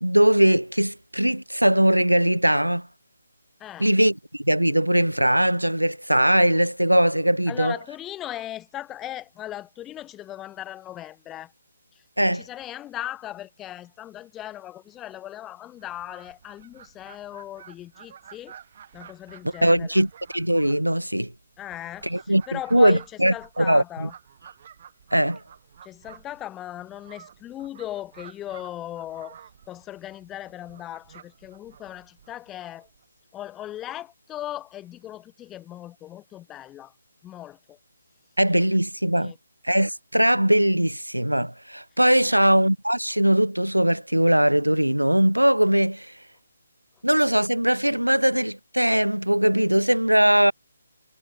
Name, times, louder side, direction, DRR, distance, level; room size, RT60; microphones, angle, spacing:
voice 1, 0.0-2.9 3.8-7.7 12.2-12.4 19.6-21.3 22.0-24.1 25.1-25.4 38.4-39.3 39.6-46.1 47.0-50.5, right 1 dB, 90° right, 0.7 m, -20 dB
voice 2, 3.6-3.9 7.5-11.5 11.9-18.6 18.9-19.9 21.6-23.0 23.3-24.1 25.8-29.4 29.7-32.9 33.3-36.9 37.2-37.8 39.2-39.4 42.2-42.4, left 13 dB, 10° left, 4.6 m, -38 dB
Fowl, 15.7-33.0, right 8 dB, 35° right, 6.2 m, -51 dB
figure-of-eight pair, 145°, 0 cm